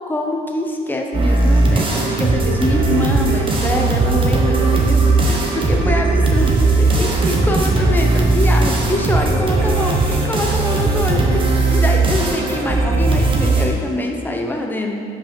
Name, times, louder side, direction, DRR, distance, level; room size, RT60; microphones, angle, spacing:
voice 1, 0.1-11.4 11.7-15.0, left 1 dB, 10° left, 1 dB, 0.8 m, -24 dB
sound 1, 1.1-13.7, right 3 dB, 30° right, 1.1 m, -17 dB
5.2 x 5.2 x 5.3 m, 2.3 s
cardioid pair, 110°, 17 cm